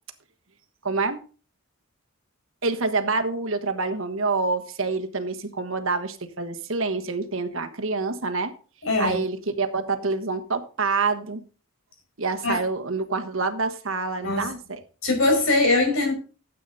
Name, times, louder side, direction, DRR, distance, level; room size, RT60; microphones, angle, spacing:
voice 1, 0.8-1.2 2.6-8.5 9.0-11.4 12.2-14.8, right 3 dB, 65° right, 7 dB, 1.3 m, -27 dB
voice 2, 8.8-9.2 12.4-12.6 14.2-14.5 15.0-16.1, left 2 dB, 65° left, 3 dB, 5.3 m, -21 dB
13.0 x 8.4 x 4.1 m, 0.37 s
head